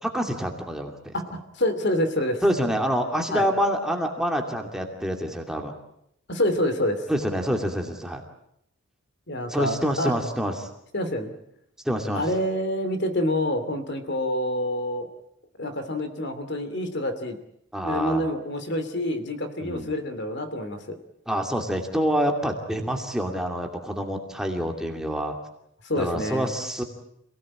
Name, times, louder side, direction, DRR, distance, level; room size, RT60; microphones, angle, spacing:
voice 1, 0.0-1.1 2.4-5.7 7.1-8.2 9.5-10.7 11.8-12.2 17.7-18.2 19.6-19.9 21.3-25.4 26.0-26.8, equal, 5° right, 2 dB, 2.5 m, -27 dB
voice 2, 1.1-2.4 3.3-3.5 6.3-7.0 9.3-10.1 10.9-11.3 12.1-15.1 15.6-17.4 17.8-21.0 25.9-26.5, left 1 dB, 55° left, 9 dB, 2.8 m, -27 dB
27.0 x 18.5 x 8.8 m, 0.76 s
head